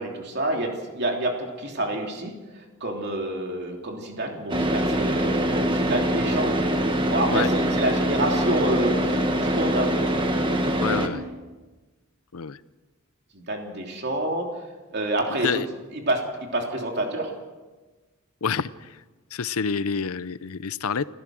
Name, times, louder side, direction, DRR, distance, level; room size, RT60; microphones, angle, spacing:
voice 1, 0.0-6.6 7.1-9.9 13.3-14.5 14.9-15.6 15.9-17.3, right 1 dB, 50° right, 1 dB, 3.2 m, -28 dB
Car / Idling, 4.5-11.1, right 1 dB, 25° right, 1.6 m, -24 dB
voice 2, 10.8-11.2 12.3-12.6 15.4-15.7 18.4-18.9 19.3-21.0, left 6 dB, 85° left, 17 dB, 0.6 m, -27 dB
29.0 x 14.5 x 6.3 m, 1.2 s
head